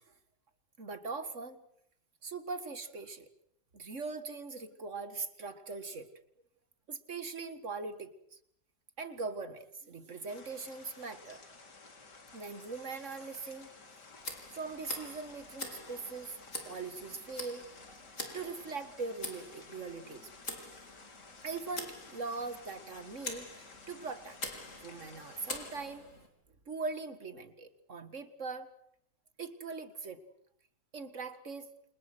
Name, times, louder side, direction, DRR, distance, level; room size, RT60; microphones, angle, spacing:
voice 1, 0.8-1.6 2.2-3.3 3.7-6.1 6.9-8.4 9.0-11.4 12.3-13.7 14.5-16.4 16.6-17.6 18.2-20.3 21.4-23.5 23.9-24.4 24.8-26.1 26.7-28.7 29.4-30.2 30.9-31.7, right 4 dB, 45° right, 11 dB, 2.3 m, -41 dB
sound 1, 10.3-25.7, left 3 dB, 70° left, 3.7 m, -54 dB
Tick, 14.2-26.3, left 2 dB, 45° left, 4.4 m, -46 dB
29.0 x 28.5 x 6.3 m, 0.70 s
omnidirectional pair, 1.9 m